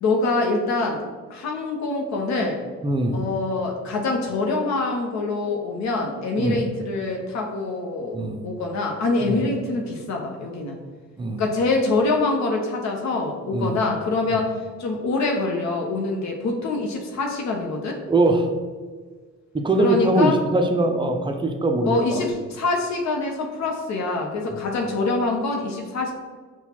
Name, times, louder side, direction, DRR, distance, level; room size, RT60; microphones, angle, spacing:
voice 1, 0.0-1.0 1.3-2.6 3.1-8.2 8.4-10.8 11.4-18.0 19.8-20.4 21.9-26.1, left 3 dB, 65° left, 1 dB, 0.7 m, -25 dB
voice 2, 2.8-3.2 6.4-6.6 8.1-8.4 9.2-9.3 11.2-11.4 13.5-13.8 18.1-18.5 19.5-22.2, right 2 dB, 15° right, 5 dB, 0.4 m, -22 dB
5.8 x 2.3 x 2.8 m, 1.5 s
cardioid pair, 90°, 30 cm